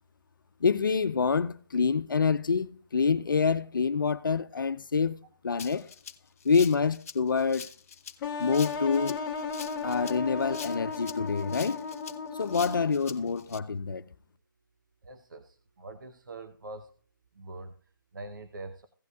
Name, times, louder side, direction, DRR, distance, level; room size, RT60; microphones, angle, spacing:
voice 1, 0.6-5.2 5.4-5.9 6.4-7.7 8.4-9.2 9.8-11.8 12.4-14.1, left 5 dB, 75° left, 0.7 m, -26 dB
Rattle (instrument), 5.6-13.6, left 7 dB, 45° left, 0.7 m, -44 dB
sound 1, 8.2-13.1, left 5 dB, 20° left, 1.3 m, -35 dB
voice 2, 15.0-16.9 17.3-18.9, right 2 dB, 65° right, 1.0 m, -44 dB
16.0 x 8.2 x 2.4 m
hypercardioid pair, 160°, 11 cm